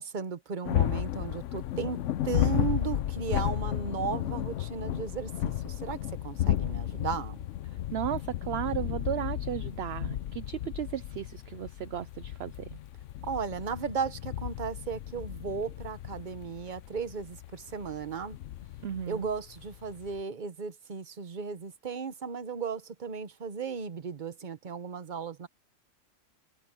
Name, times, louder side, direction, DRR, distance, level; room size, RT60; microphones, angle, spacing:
voice 1, 0.0-2.0 2.2-7.4 13.2-18.4 19.1-25.5, right 6 dB, 40° right, 1.1 m, -35 dB
sound 1, 0.6-20.2, left 12 dB, 70° left, 1.0 m, -33 dB
voice 2, 7.9-12.8 18.8-19.3, right 11 dB, 60° right, 0.8 m, -35 dB
omnidirectional pair, 1.4 m